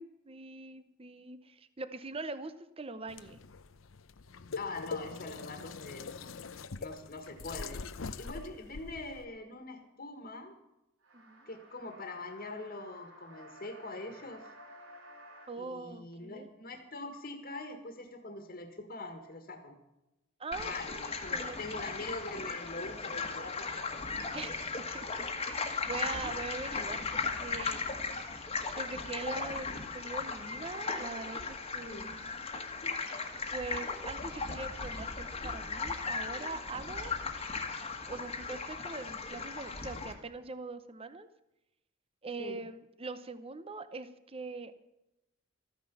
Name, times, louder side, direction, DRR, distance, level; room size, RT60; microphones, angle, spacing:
voice 1, 0.0-3.4 6.2-6.4 11.1-11.5 15.5-16.5 20.4-21.0 21.3-21.6 24.3-24.6 24.9-27.9 28.8-32.3 33.5-37.2 38.0-41.3 42.2-44.8, right 3 dB, 30° right, 12 dB, 0.8 m, -42 dB
sound 1, 3.1-9.2, left 4 dB, 85° left, 0.7 m, -43 dB
voice 2, 4.6-6.3 6.8-7.8 8.2-10.5 11.5-14.5 15.6-19.8 20.6-24.6 31.9-32.1 42.4-42.6, left 2 dB, 45° left, 5 dB, 1.7 m, -43 dB
sound 2, 11.0-15.5, right 1 dB, 85° right, 3.5 m, -54 dB
sound 3, 20.5-40.1, left 4 dB, 30° left, 1.5 m, -37 dB
14.0 x 9.9 x 7.0 m, 0.91 s
head